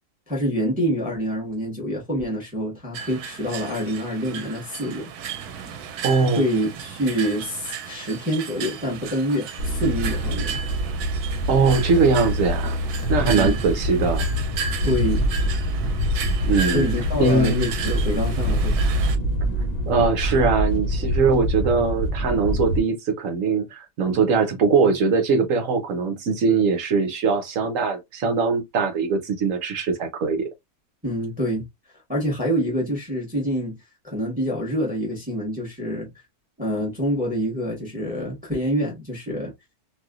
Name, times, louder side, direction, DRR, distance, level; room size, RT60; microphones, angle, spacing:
voice 1, 0.3-5.1 6.4-10.6 13.2-13.6 14.8-15.3 16.7-18.8 31.0-31.6 32.1-33.8 34.0-36.1 36.6-39.5, equal, 5° right, 1.2 m, -26 dB
sound 1, 2.9-19.2, right 7 dB, 90° right, 1.1 m, -35 dB
voice 2, 6.0-6.4 11.5-12.8 13.1-14.2 16.4-16.9 17.2-17.7 19.9-30.5, right 4 dB, 65° right, 1.1 m, -21 dB
sound 2, 9.6-22.8, equal, 50° left, 0.8 m, -25 dB
3.1 x 2.6 x 2.4 m
omnidirectional pair, 1.6 m